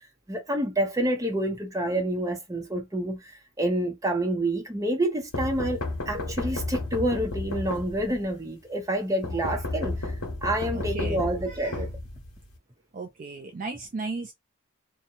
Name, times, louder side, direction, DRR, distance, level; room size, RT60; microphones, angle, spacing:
voice 1, 0.3-10.1 10.4-11.9, right 1 dB, 15° right, 0.8 m, -28 dB
sound 1, 5.3-8.3 9.2-12.6, left 2 dB, 80° left, 1.0 m, -32 dB
voice 2, 10.7-11.8 12.9-14.3, right 3 dB, 40° right, 0.4 m, -36 dB
2.8 x 2.2 x 2.5 m
head